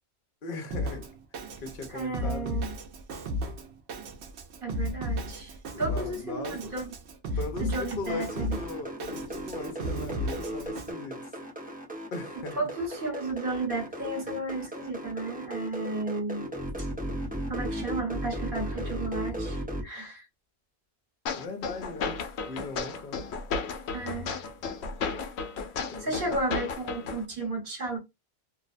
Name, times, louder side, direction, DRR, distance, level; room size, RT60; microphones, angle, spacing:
voice 1, 0.4-1.1 1.6-2.6 5.7-6.8 7.4-11.4 12.1-12.7 21.3-23.2 25.9-26.4, left 3 dB, 60° left, 0.9 m, -39 dB
Drum kit, 0.7-10.9, equal, 85° right, 0.9 m, -35 dB
voice 2, 1.9-2.7 4.6-7.0 7.6-8.6 12.6-16.5 16.8-16.9 17.5-20.3 23.9-24.4 26.0-28.0, right 2 dB, 55° right, 1.3 m, -33 dB
sound 1, 8.1-19.8, right 1 dB, 10° right, 0.5 m, -36 dB
sound 2, 21.3-27.2, left 5 dB, 85° left, 0.8 m, -34 dB
2.6 x 2.1 x 2.4 m
omnidirectional pair, 1.1 m